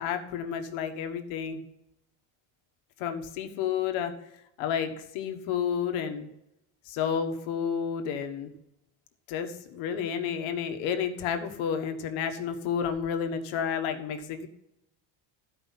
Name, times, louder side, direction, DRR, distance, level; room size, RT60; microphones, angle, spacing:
voice 1, 0.0-1.6 3.0-4.1 4.6-6.3 6.9-8.5 9.3-14.5, left 7 dB, 85° left, 6 dB, 1.5 m, -31 dB
13.5 x 5.3 x 5.6 m, 0.84 s
cardioid pair, 180°, 46 cm